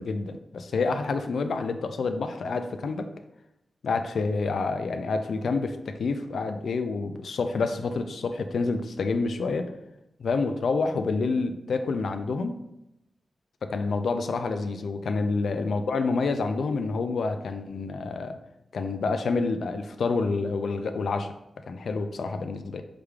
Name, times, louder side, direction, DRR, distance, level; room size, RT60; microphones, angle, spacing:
voice 1, 0.0-3.1 3.8-9.7 10.2-12.6 13.6-18.4 18.7-21.3 21.7-22.8, left 4 dB, 80° left, 8 dB, 0.3 m, -28 dB
4.9 x 3.2 x 2.3 m, 0.86 s
cardioid pair, 75°, 0 cm